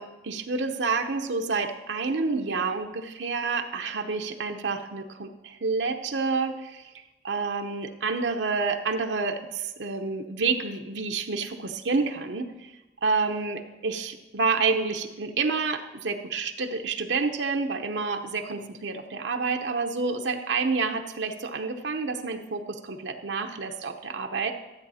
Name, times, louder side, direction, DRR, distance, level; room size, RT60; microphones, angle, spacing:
voice 1, 0.0-12.7 13.0-24.5, right 4 dB, 85° right, 5 dB, 0.8 m, -29 dB
13.0 x 8.1 x 4.2 m, 1.1 s
head